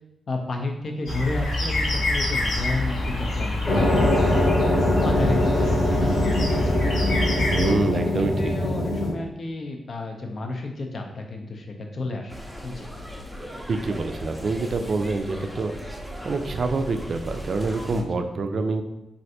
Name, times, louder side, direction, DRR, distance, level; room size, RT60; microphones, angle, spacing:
voice 1, 0.3-4.4 5.0-7.2 7.6-7.8 8.0-12.3 12.6-12.9 17.9-18.1, left 2 dB, 55° left, 2 dB, 0.5 m, -31 dB
sound 1, 1.1-7.7, left 1 dB, 85° left, 0.9 m, -26 dB
sound 2, 3.7-9.1, left 1 dB, 35° left, 0.8 m, -22 dB
voice 2, 7.5-8.5 13.7-15.7 16.2-18.8, right 3 dB, 60° right, 7 dB, 0.3 m, -26 dB
sound 3, 12.3-18.0, equal, 5° left, 0.6 m, -37 dB
3.2 x 2.5 x 2.7 m, 0.92 s
cardioid pair, 65°, 0 cm